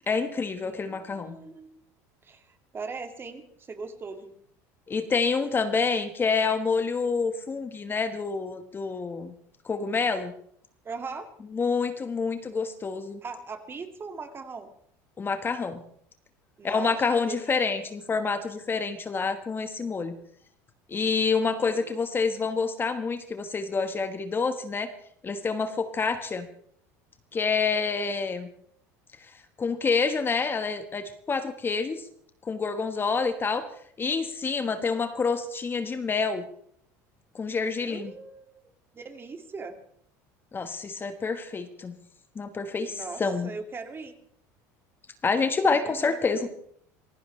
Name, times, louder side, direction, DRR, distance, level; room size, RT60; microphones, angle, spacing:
voice 1, 0.1-1.3 4.9-9.3 9.6-10.3 11.5-13.2 15.2-15.8 16.6-20.1 20.9-24.9 25.2-26.5 27.3-28.5 29.2-29.3 29.6-32.0 32.4-33.7 34.0-36.4 37.3-38.1 40.5-41.9 42.3-43.5 45.2-46.5, left 4 dB, 25° left, 9 dB, 1.4 m, -27 dB
voice 2, 0.6-1.8 2.2-4.3 10.8-11.3 13.2-14.7 16.6-17.0 17.3-17.8 21.5-21.9 37.8-38.6 38.9-39.8 42.9-44.1 45.7-46.5, right 4 dB, 25° right, 7 dB, 2.2 m, -40 dB
26.5 x 16.0 x 3.3 m, 0.64 s
supercardioid pair, 105°, 8 cm